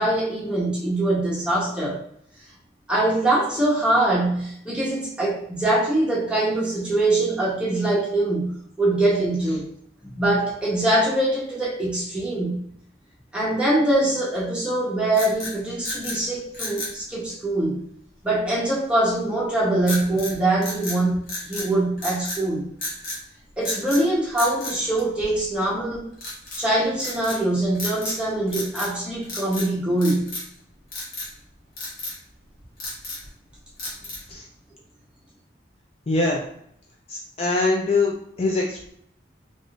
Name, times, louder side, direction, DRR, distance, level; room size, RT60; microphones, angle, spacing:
voice 1, 0.0-2.0 2.9-9.6 10.0-12.6 13.3-17.8 18.2-22.7 23.6-26.1 26.6-30.3, right 1 dB, 5° right, -6 dB, 0.9 m, -23 dB
sound 1, 15.1-16.2 16.5-17.0 19.9-20.3 20.6-21.7 22.0-22.4 22.8-23.2 23.6-24.0 24.4-25.5 26.2-26.6 27.0-27.4 27.7-28.2 28.5-29.0 29.2-29.7 30.0-30.5 30.9-31.3 31.8-32.2 32.6-33.3 33.8-34.3, left 2 dB, 50° left, 1.1 m, -33 dB
voice 2, 36.1-36.4 37.1-38.9, left 3 dB, 35° left, -1 dB, 0.3 m, -23 dB
3.5 x 2.5 x 2.4 m, 0.69 s
head